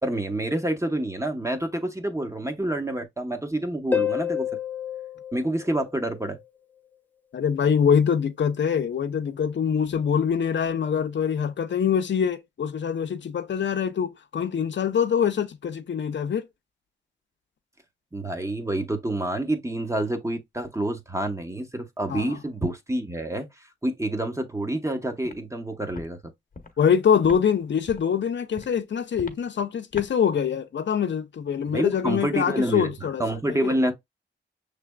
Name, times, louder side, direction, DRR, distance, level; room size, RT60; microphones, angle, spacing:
voice 1, 0.0-4.5 5.3-6.4 18.1-23.5 23.8-26.2 31.7-32.9 33.2-33.9, right 1 dB, 15° right, 0.9 m, -28 dB
Harp, 3.9-6.4 9.9-10.0, left 8 dB, 10° left, 0.6 m, -29 dB
voice 2, 7.3-16.5 22.1-22.4 26.8-33.8, left 7 dB, 65° left, 0.6 m, -24 dB
Walk footsteps, 25.2-25.4 25.9-26.1 26.5-26.7 27.2-27.4 27.8-28.1 28.5-28.7 29.1-29.4 29.9-30.1, left 3 dB, 45° left, 0.9 m, -39 dB
6.0 x 3.3 x 2.2 m
cardioid pair, 65°, 20 cm